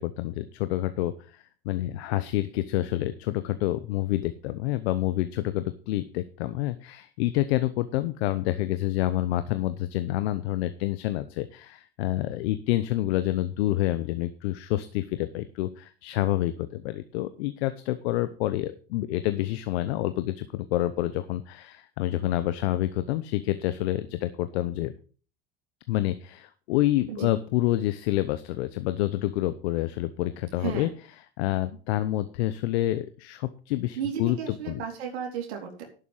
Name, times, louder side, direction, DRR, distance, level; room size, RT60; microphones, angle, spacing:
voice 1, 0.0-24.9 25.9-30.9 31.4-34.8, left 15 dB, 80° left, 12 dB, 0.9 m, -28 dB
voice 2, 30.6-30.9 34.0-35.9, right 8 dB, 85° right, 1 dB, 3.1 m, -34 dB
11.5 x 7.0 x 5.5 m, 0.39 s
supercardioid pair, 95°, 32 cm